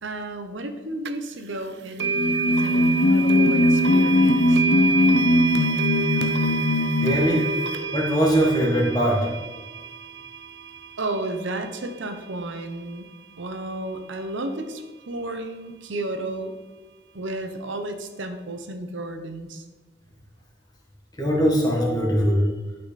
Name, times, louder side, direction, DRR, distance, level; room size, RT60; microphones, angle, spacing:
voice 1, 0.0-4.6 11.0-13.1 13.4-16.6 17.1-19.6, right 2 dB, 85° right, 7 dB, 0.9 m, -33 dB
sound 1, 1.0-1.1 2.0-13.0, right 4 dB, 65° right, 0.4 m, -28 dB
sound 2, 2.0-7.3, left 1 dB, 65° left, 0.9 m, -20 dB
voice 2, 7.0-7.5 7.9-9.3 21.2-22.5, equal, 20° left, -1 dB, 1.7 m, -21 dB
11.5 x 5.6 x 4.2 m, 1.2 s
head